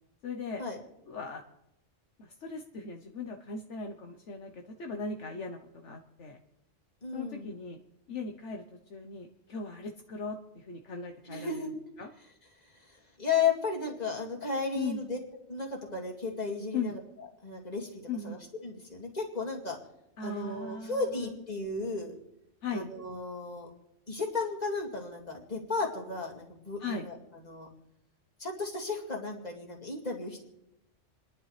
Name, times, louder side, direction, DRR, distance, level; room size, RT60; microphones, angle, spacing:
voice 1, 0.2-0.6 1.1-1.4 2.2-6.4 7.1-7.8 8.1-8.6 8.9-11.6 12.0-12.1 14.7-15.0 16.7-16.9 18.1-18.4 20.2-21.0 22.6-22.9 26.8-27.1, left 4 dB, 75° left, 3 dB, 1.3 m, -38 dB
voice 2, 7.0-7.5 11.2-11.7 12.7-15.2 15.5-17.0 17.4-19.8 20.2-22.1 22.7-23.7 24.1-27.7 28.4-30.4, left 4 dB, 35° left, 0 dB, 2.4 m, -34 dB
29.0 x 11.0 x 3.3 m, 0.84 s
omnidirectional pair, 1.2 m